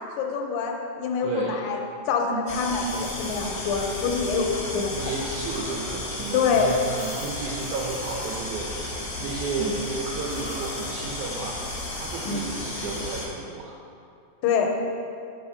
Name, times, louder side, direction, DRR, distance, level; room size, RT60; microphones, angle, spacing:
voice 1, 0.2-1.8 2.1-5.3 6.3-6.8 9.5-9.7 12.3-12.5 14.4-14.7, left 5 dB, 80° left, 1 dB, 2.3 m, -25 dB
voice 2, 1.2-1.6 4.9-8.7 9.2-11.6 11.9-13.8, right 4 dB, 80° right, -3 dB, 1.7 m, -33 dB
sound 1, 2.5-13.3, left 2 dB, 45° left, 1.1 m, -33 dB
6.8 x 5.5 x 5.4 m, 2.4 s
omnidirectional pair, 4.1 m